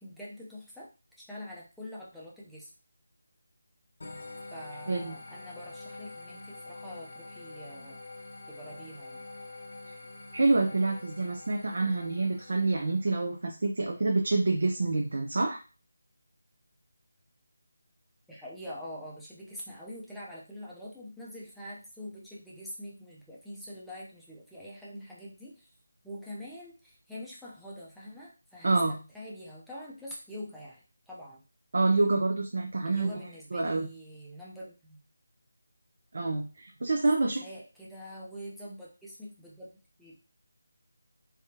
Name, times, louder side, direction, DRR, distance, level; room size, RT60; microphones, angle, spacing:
voice 1, 0.0-0.9 1.2-2.7 4.5-8.0 8.5-9.2 18.3-25.7 26.0-31.4 32.8-35.0 37.2-39.7 40.0-40.1, equal, ahead, -8 dB, 0.7 m, -45 dB
sound 1, 4.0-13.4, left 2 dB, 55° left, 1.0 m, -46 dB
voice 2, 10.3-15.6 28.6-29.0 31.7-33.2 33.5-33.9 36.1-37.4, right 3 dB, 60° right, 2 dB, 0.7 m, -27 dB
3.6 x 3.4 x 2.8 m, 0.32 s
figure-of-eight pair, 170°, 0 cm